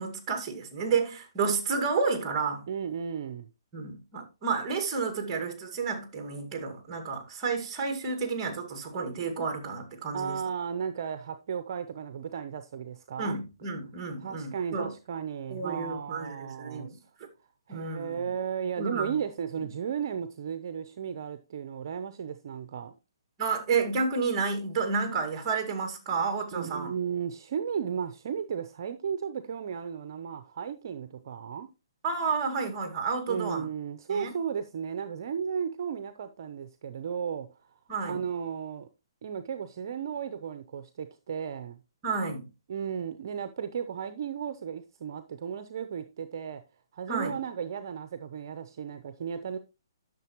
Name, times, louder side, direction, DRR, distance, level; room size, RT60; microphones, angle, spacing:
voice 1, 0.0-2.7 3.7-10.4 13.2-14.9 15.5-17.0 17.7-18.1 18.8-19.2 23.4-26.9 32.0-33.7 34.1-34.3 37.9-38.2 42.0-42.5 47.1-47.4, right 4 dB, 25° right, 2.0 m, -31 dB
voice 2, 2.7-3.5 10.1-13.4 14.2-17.0 17.7-22.9 26.5-31.7 33.3-37.5 38.0-38.9 39.2-41.8 42.7-46.6 46.9-49.6, right 7 dB, 55° right, 0.7 m, -34 dB
10.5 x 6.6 x 3.1 m
hypercardioid pair, 155°, 2 cm